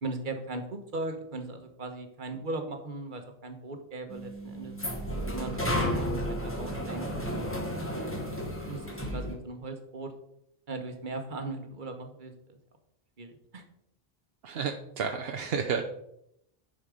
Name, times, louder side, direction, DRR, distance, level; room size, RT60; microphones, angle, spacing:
voice 1, 0.0-4.7 5.3-8.0 8.6-8.8 9.1-10.1 10.7-12.3 13.2-13.6, right 2 dB, 50° right, 6 dB, 1.3 m, -38 dB
Elevator ride, 4.1-9.3, equal, 15° left, 1.2 m, -32 dB
voice 2, 14.4-15.8, right 6 dB, 75° right, 4 dB, 0.9 m, -31 dB
10.5 x 4.5 x 5.0 m, 0.77 s
omnidirectional pair, 1.0 m